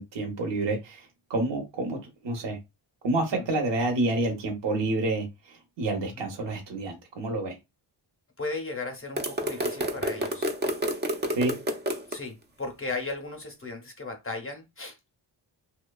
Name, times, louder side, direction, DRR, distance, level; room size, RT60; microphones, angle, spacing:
voice 1, 0.0-2.6 3.0-7.5 11.3-11.6, right 2 dB, 60° right, 0.8 m, -29 dB
voice 2, 8.4-10.5 12.1-15.1, left 3 dB, 25° left, 0.6 m, -36 dB
sound 1, 9.2-12.2, right 1 dB, 25° right, 0.3 m, -29 dB
2.7 x 2.1 x 2.2 m
wide cardioid pair, 100°, 49 cm